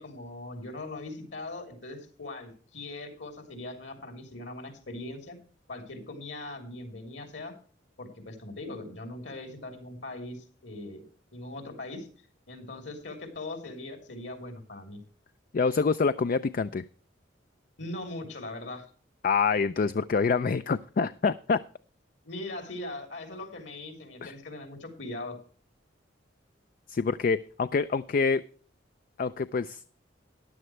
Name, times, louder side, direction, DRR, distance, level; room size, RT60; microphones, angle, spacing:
voice 1, 0.0-5.4 5.7-7.6 8.0-11.0 11.3-12.1 12.5-15.0 17.8-18.9 22.2-25.4, left 2 dB, 70° left, 5 dB, 3.4 m, -40 dB
voice 2, 15.5-16.8 19.2-21.6 24.2-24.3 26.9-28.4 29.2-29.8, left 5 dB, 50° left, 13 dB, 0.4 m, -26 dB
14.5 x 11.0 x 3.2 m, 0.43 s
head